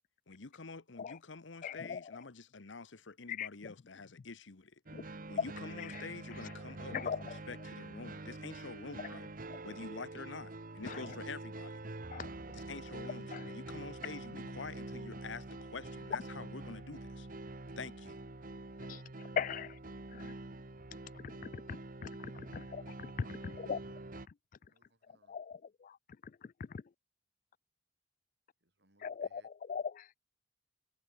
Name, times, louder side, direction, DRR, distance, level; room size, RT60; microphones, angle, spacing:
voice 1, 0.3-4.7 5.3-9.3 9.6-11.7 12.5-17.3 17.8-18.2, left 4 dB, 80° left, 1.1 m, -47 dB
voice 2, 1.6-2.0 3.3-3.7 4.9-5.0 6.9-7.4 9.5-9.6 10.8-11.1 12.1-12.3 13.3-13.4 18.9-19.0 19.4-19.8 20.1-20.3 21.1-23.1 23.7-23.8 25.3-26.0 26.4-26.8 29.0-30.1, left 7 dB, 45° left, 0.3 m, -40 dB
sound 1, 4.9-24.3, right 2 dB, 50° right, 1.3 m, -46 dB
voice 3, 23.1-23.7 24.6-25.4 28.6-29.5, right 2 dB, 65° right, 6.1 m, -70 dB
head